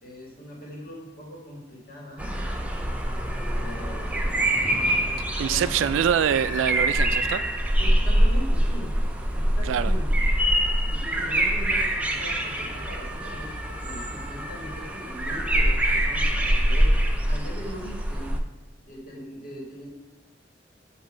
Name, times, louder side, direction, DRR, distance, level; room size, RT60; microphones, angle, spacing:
voice 1, 0.0-2.3 3.5-4.5 5.4-6.0 7.8-8.9 9.3-10.2 10.8-18.4 18.8-19.9, equal, 50° left, -2 dB, 1.5 m, -40 dB
sound 1, 2.2-18.4, right 1 dB, 5° right, 0.4 m, -24 dB
voice 2, 5.4-7.4 9.6-9.9, right 8 dB, 85° right, 14 dB, 0.3 m, -24 dB
7.3 x 2.6 x 4.9 m, 1.2 s
head